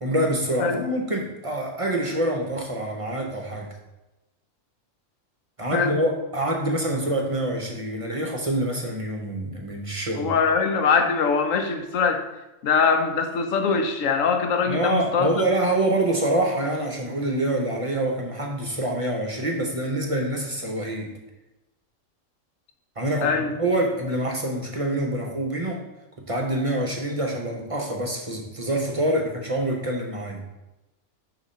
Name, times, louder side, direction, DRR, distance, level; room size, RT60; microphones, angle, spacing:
voice 1, 0.0-3.7 5.6-10.3 14.7-21.1 23.0-25.8 26.2-30.4, right 1 dB, 30° right, 1 dB, 0.7 m, -26 dB
voice 2, 10.2-12.2 12.6-15.5 23.2-23.5, left 5 dB, 85° left, 6 dB, 1.1 m, -22 dB
7.0 x 3.0 x 5.4 m, 1.0 s
omnidirectional pair, 1.3 m